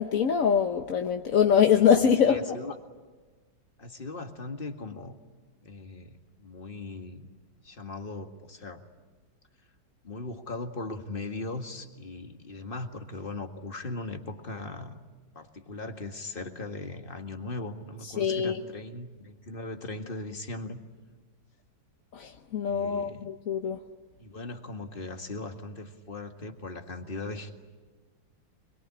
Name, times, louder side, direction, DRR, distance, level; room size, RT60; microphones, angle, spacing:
voice 1, 0.0-2.4 18.2-18.6 22.1-23.8, left 7 dB, 50° left, 4 dB, 1.2 m, -23 dB
voice 2, 2.0-2.8 3.8-5.2 5.6-7.3 7.6-8.8 10.0-15.0 15.3-20.8 22.7-23.3 24.2-27.6, left 2 dB, 30° left, 5 dB, 1.9 m, -39 dB
25.5 x 22.5 x 9.9 m, 1.3 s
omnidirectional pair, 2.2 m